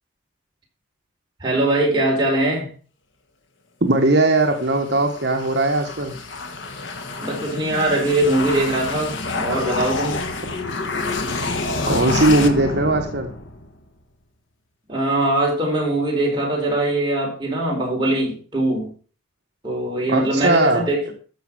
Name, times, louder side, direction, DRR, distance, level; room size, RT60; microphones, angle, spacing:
voice 1, 1.4-2.7 7.2-10.2 14.9-18.9 19.6-21.2, right 1 dB, 25° right, 4.6 m, -21 dB
voice 2, 3.8-6.1 11.9-13.3 20.1-20.9, right 2 dB, 55° right, 1.3 m, -19 dB
sound 1, 4.4-13.8, left 3 dB, 75° left, 1.6 m, -28 dB
13.5 x 6.3 x 6.2 m
head